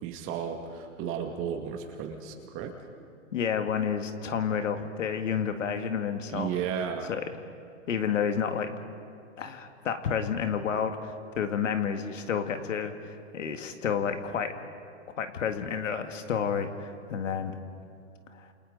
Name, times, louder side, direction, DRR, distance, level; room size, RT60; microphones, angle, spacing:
voice 1, 0.0-2.7 6.3-7.1, right 8 dB, 35° right, 3 dB, 2.0 m, -34 dB
voice 2, 3.3-6.5 7.1-7.3 7.9-8.8 9.4-14.5 15.2-17.6 18.3-18.5, left 7 dB, 80° left, 7 dB, 1.9 m, -30 dB
29.5 x 28.0 x 4.0 m, 2.5 s
hypercardioid pair, 125°, 37 cm